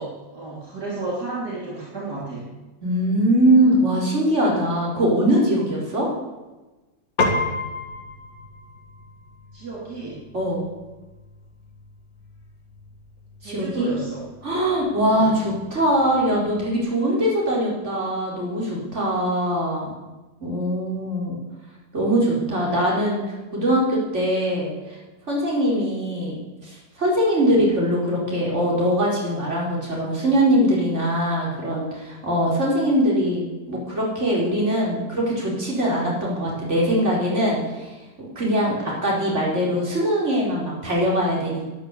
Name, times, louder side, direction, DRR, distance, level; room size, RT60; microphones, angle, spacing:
voice 1, 0.0-2.5 9.5-10.2 13.4-14.2 15.1-15.3 22.3-22.5 36.3-36.5 38.7-39.0, right 3 dB, 60° right, -5 dB, 3.7 m, -33 dB
voice 2, 2.8-6.1 10.3-10.6 13.4-13.9 14.4-19.9 20.4-21.4 21.9-23.2 23.5-25.0 25.3-37.9 38.2-41.7, equal, 40° right, -4 dB, 4.8 m, -22 dB
Piano, 7.2-16.8, left 2 dB, 50° left, 2.4 m, -33 dB
12.5 x 10.5 x 8.4 m, 1.1 s
omnidirectional pair, 1.9 m